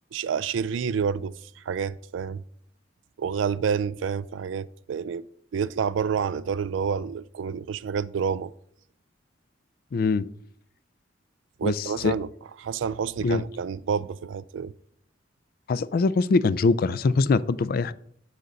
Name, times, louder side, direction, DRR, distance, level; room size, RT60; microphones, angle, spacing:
voice 1, 0.1-2.4 3.2-5.2 5.5-8.5 11.6-12.3 12.6-14.7, right 6 dB, 85° right, 0.4 m, -28 dB
voice 2, 9.9-10.2 11.6-12.1 13.2-13.4 15.7-17.9, left 4 dB, 50° left, 0.4 m, -23 dB
6.8 x 6.4 x 5.2 m
head